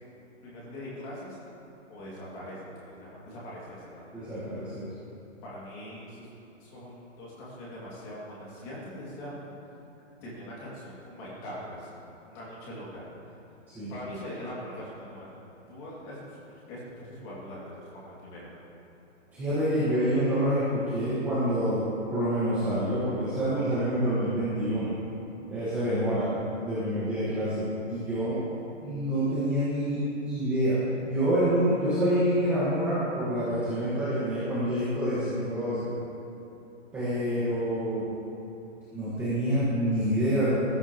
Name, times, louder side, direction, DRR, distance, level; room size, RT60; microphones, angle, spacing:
voice 1, 0.4-1.4 1.9-2.6 2.9-4.0 5.4-6.3 6.6-9.5 10.2-11.9 12.3-13.0 13.9-15.3 15.7-16.4 16.7-18.5, equal, 15° left, -7 dB, 2.4 m, -42 dB
voice 2, 4.1-4.9 13.7-13.9 19.3-21.8 22.1-24.9 25.5-26.3 26.6-28.4 28.8-30.0 30.3-35.9 36.9-38.0 38.9-40.5, equal, 5° right, -13 dB, 1.5 m, -27 dB
20.0 x 14.5 x 3.0 m, 2.9 s
hypercardioid pair, 180°, 37 cm